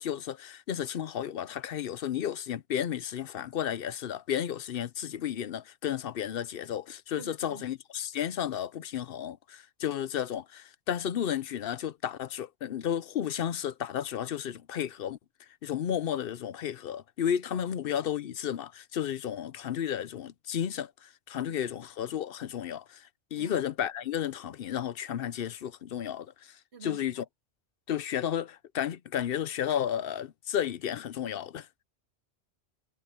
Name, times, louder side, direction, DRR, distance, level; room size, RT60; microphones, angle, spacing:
voice 1, 0.0-15.2 15.6-27.2 27.9-31.7, left 9 dB, 60° left, 0.8 m, -33 dB
voice 2, 7.1-7.6 17.5-17.7 21.4-21.6 23.4-23.6 26.7-27.0, right 6 dB, 65° right, 3.0 m, -47 dB
omnidirectional pair, 1.2 m